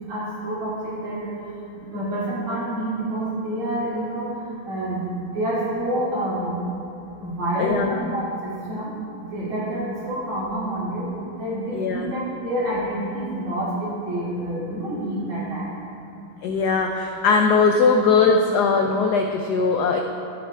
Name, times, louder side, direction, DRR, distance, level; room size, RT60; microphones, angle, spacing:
voice 1, 0.1-1.3 1.8-4.3 4.7-6.6 7.2-11.1 11.4-15.6, right 1 dB, 70° right, -9 dB, 3.4 m, -28 dB
voice 2, 7.6-8.0 11.7-12.1 16.4-20.0, left 4 dB, 85° left, 4 dB, 0.9 m, -20 dB
13.5 x 6.6 x 3.3 m, 2.6 s
omnidirectional pair, 2.3 m